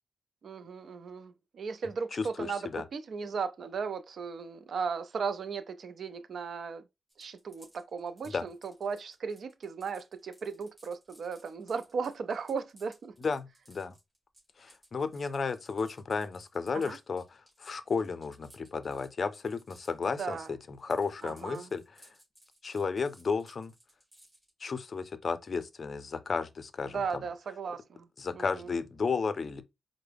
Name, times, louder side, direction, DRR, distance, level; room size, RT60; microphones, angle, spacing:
voice 1, 0.4-6.8 7.2-13.1 16.7-17.0 20.2-20.5 21.2-21.7 26.9-28.1 28.3-28.7, right 5 dB, 70° right, 0.4 m, -36 dB
voice 2, 2.1-2.8 8.3-8.4 13.2-14.0 14.6-22.1 22.6-23.7 24.6-27.0 28.2-29.6, left 5 dB, 50° left, 0.4 m, -33 dB
sound 1, 7.1-20.5 20.7-24.5, right 1 dB, 20° right, 2.3 m, -60 dB
4.6 x 2.0 x 3.3 m
wide cardioid pair, 125°, 0 cm